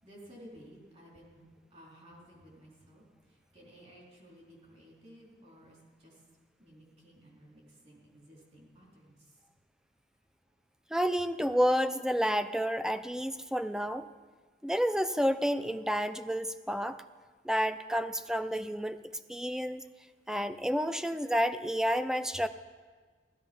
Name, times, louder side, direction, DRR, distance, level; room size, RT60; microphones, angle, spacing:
voice 1, 0.0-6.2 6.6-9.4, equal, 35° right, -3 dB, 4.0 m, -55 dB
voice 2, 10.9-14.1 14.6-17.0 17.4-19.0 19.3-19.8 20.3-22.5, equal, 5° right, 11 dB, 0.5 m, -30 dB
16.0 x 13.5 x 5.4 m, 1.5 s
head